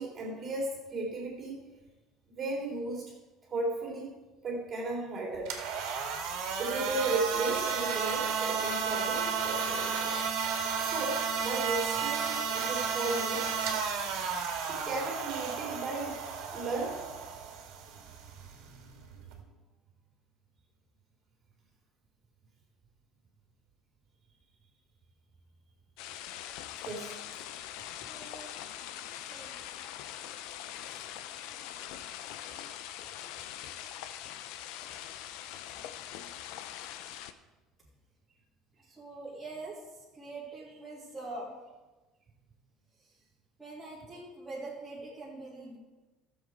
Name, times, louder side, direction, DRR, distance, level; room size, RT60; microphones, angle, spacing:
voice 1, 0.0-1.6 2.3-3.1 3.4-4.1 4.4-5.5 6.6-10.2 10.8-13.5 14.6-16.2 16.5-17.0 26.8-27.2, right 2 dB, 25° right, -2 dB, 3.1 m, -35 dB
sound 1, 5.3-19.4, right 6 dB, 70° right, 1.9 m, -33 dB
sound 2, 26.0-37.3, left 11 dB, 75° left, 0.6 m, -43 dB
voice 2, 28.0-28.5 29.1-29.5 31.4-31.6 39.0-39.8 40.1-41.5 43.6-45.8, right 2 dB, ahead, -9 dB, 2.4 m, -43 dB
14.0 x 7.2 x 4.8 m, 1.2 s
cardioid pair, 170°, 0 cm